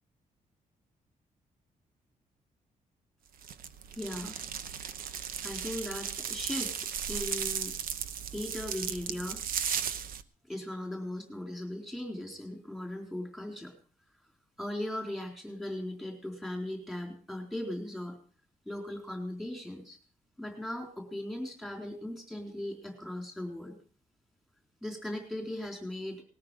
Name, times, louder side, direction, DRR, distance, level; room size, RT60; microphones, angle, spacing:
sound 1, 3.4-10.2, right 8 dB, 85° right, 1.0 m, -36 dB
voice 1, 3.9-4.4 5.4-6.7 7.1-7.7 8.3-9.4 10.5-13.7 14.6-18.2 18.7-20.0 20.4-23.8 24.8-26.2, left 1 dB, ahead, 1 dB, 3.9 m, -38 dB
19.5 x 13.5 x 4.9 m, 0.42 s
wide cardioid pair, 160°, 14 cm